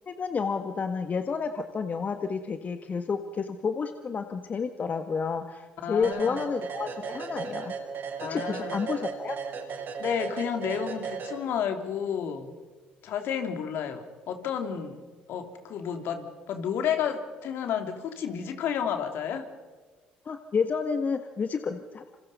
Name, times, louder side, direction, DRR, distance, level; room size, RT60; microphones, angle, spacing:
voice 1, 0.1-7.7 8.2-9.4 20.2-22.0, left 5 dB, 40° left, 7 dB, 1.6 m, -30 dB
voice 2, 5.8-6.4 8.2-8.8 10.0-12.5 13.0-19.4, left 8 dB, 65° left, 6 dB, 3.1 m, -31 dB
sound 1, 6.0-11.8, right 6 dB, 55° right, 6.6 m, -36 dB
27.5 x 27.0 x 5.6 m, 1.3 s
hypercardioid pair, 60°, 4 cm